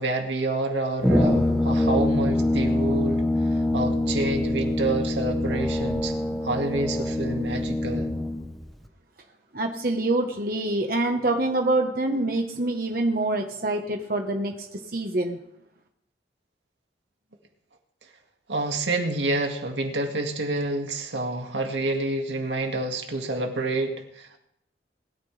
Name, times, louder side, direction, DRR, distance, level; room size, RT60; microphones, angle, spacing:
voice 1, 0.0-3.2 3.7-6.1 6.4-8.1 18.5-24.4, right 2 dB, 85° right, 3 dB, 2.1 m, -28 dB
Brass instrument, 1.0-8.5, left 1 dB, ahead, 1.0 m, -24 dB
voice 2, 9.5-14.5 14.9-15.4, right 2 dB, 55° right, 3 dB, 1.3 m, -25 dB
20.5 x 13.5 x 3.4 m, 0.78 s
head